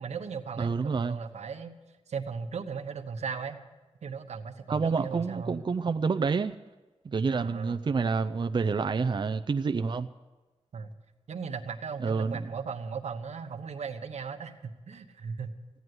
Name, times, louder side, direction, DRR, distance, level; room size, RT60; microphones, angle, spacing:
voice 1, 0.0-1.7 2.1-3.6 4.0-5.6 7.3-7.8 10.7-10.9 11.3-15.5, right 5 dB, 85° right, 6 dB, 1.1 m, -37 dB
voice 2, 0.6-1.2 4.7-6.6 7.0-10.1 12.0-12.5, right 5 dB, 45° right, 8 dB, 0.5 m, -28 dB
15.5 x 9.4 x 9.6 m, 1.2 s
wide cardioid pair, 85°, 11 cm